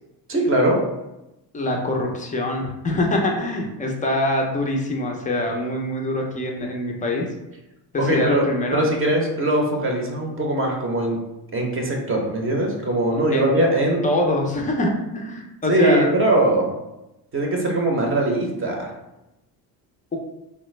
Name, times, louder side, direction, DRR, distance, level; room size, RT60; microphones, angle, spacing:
voice 1, 0.3-0.8 8.0-8.5 8.7-11.2 11.5-14.0 15.7-16.7 17.3-18.9, right 1 dB, 30° right, 0 dB, 0.6 m, -21 dB
voice 2, 1.5-7.3 7.9-8.8 13.3-13.5 14.0-16.1, left 1 dB, 20° left, 1 dB, 0.3 m, -24 dB
3.2 x 2.0 x 3.0 m, 0.94 s
cardioid pair, 115°, 44 cm